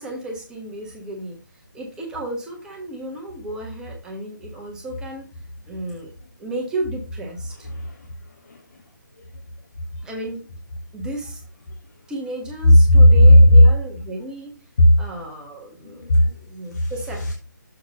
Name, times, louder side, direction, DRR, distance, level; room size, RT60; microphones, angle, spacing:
voice 1, 0.0-1.4 1.7-5.3 5.7-6.1 6.4-7.7 10.0-10.4 10.9-11.4 12.1-14.5 15.0-17.3, right 2 dB, 5° right, 0 dB, 1.1 m, -33 dB
voice 2, 7.6-8.8 12.9-13.6 14.8-14.9 15.8-16.4 16.7-17.3, equal, 55° left, 2 dB, 1.2 m, -15 dB
6.7 x 3.8 x 5.2 m, 0.33 s
figure-of-eight pair, 150°, 11 cm